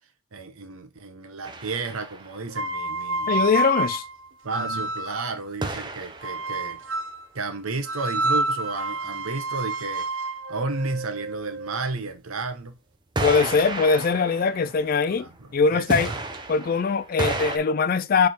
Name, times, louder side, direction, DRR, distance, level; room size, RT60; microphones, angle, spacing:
voice 1, 0.3-3.3 4.4-6.8 7.3-12.8 15.2-16.2, right 3 dB, 90° right, 1.0 m, -33 dB
sound 1, 1.4-2.5 5.6-6.7 13.2-15.4 15.9-17.6, right 2 dB, 20° right, 0.8 m, -32 dB
sound 2, 2.5-5.3 6.2-7.2 7.8-11.8, right 2 dB, 65° right, 0.7 m, -29 dB
voice 2, 3.3-4.0 13.2-16.1 16.5-18.3, left 5 dB, 45° left, 0.3 m, -22 dB
6.4 x 3.5 x 4.3 m
head